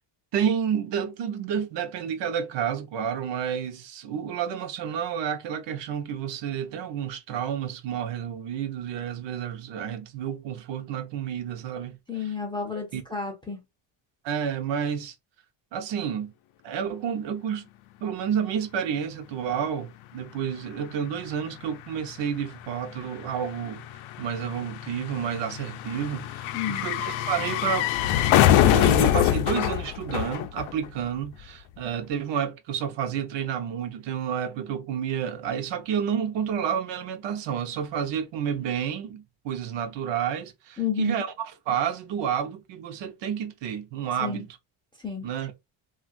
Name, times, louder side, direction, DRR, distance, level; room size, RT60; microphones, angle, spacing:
voice 1, 0.3-11.9 12.2-12.3 12.9-13.0 14.2-15.1 15.7-16.3 16.6-17.6 18.0-23.8 24.2-27.9 28.6-44.5 45.2-45.5, right 8 dB, 60° right, 0.6 m, -30 dB
voice 2, 12.1-13.6 26.5-26.9 40.8-41.2 44.2-44.4 45.0-45.3, left 7 dB, 10° left, 0.4 m, -31 dB
sound 1, 20.4-20.5 20.7-31.1 31.3-31.4, left 12 dB, 75° left, 0.5 m, -25 dB
3.1 x 2.3 x 2.5 m
cardioid pair, 165°, 48 cm